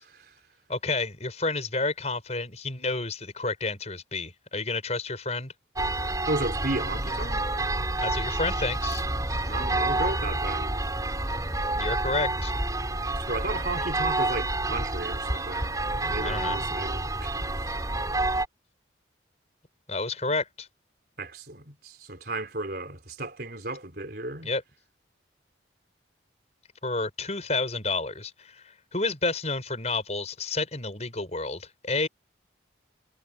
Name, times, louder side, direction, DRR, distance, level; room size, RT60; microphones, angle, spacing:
voice 1, 0.0-0.3 6.3-7.5 9.5-10.8 13.1-17.7 21.2-24.5, right 2 dB, 55° right, 4.3 m, -34 dB
voice 2, 0.7-5.5 8.0-9.0 11.8-12.5 16.2-16.6 19.9-20.7 24.4-24.6 26.8-32.1, left 3 dB, 35° left, 5.8 m, -30 dB
sound 1, 5.8-18.5, right 2 dB, 20° right, 6.6 m, -29 dB
head